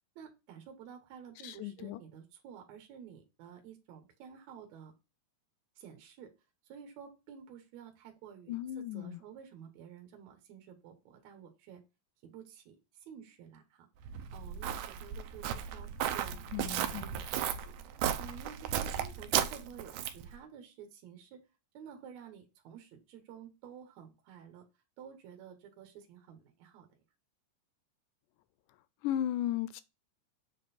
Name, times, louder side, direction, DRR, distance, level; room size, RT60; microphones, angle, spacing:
voice 1, 0.2-4.9 5.8-6.3 6.6-11.8 12.2-17.7 18.2-21.4 21.7-24.6 25.0-27.0, right 8 dB, 70° right, 2.3 m, -51 dB
voice 2, 1.4-2.0 8.5-9.2 16.5-17.1 29.0-29.8, left 11 dB, 85° left, 2.1 m, -35 dB
Walk footsteps, 14.0-20.3, right 10 dB, 90° right, 2.2 m, -35 dB
7.6 x 3.7 x 4.2 m
omnidirectional pair, 3.6 m